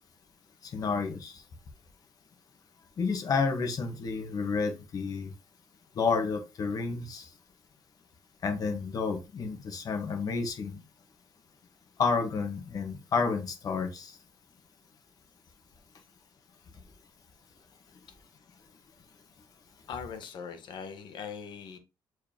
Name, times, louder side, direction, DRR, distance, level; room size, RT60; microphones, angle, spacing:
voice 1, 0.6-1.4 3.0-5.3 5.9-7.3 8.4-10.8 12.0-14.1, left 4 dB, 45° left, 1.4 m, -30 dB
voice 2, 19.9-21.8, left 6 dB, 60° left, 1.4 m, -40 dB
7.0 x 4.7 x 3.0 m
cardioid pair, 130°, 9 cm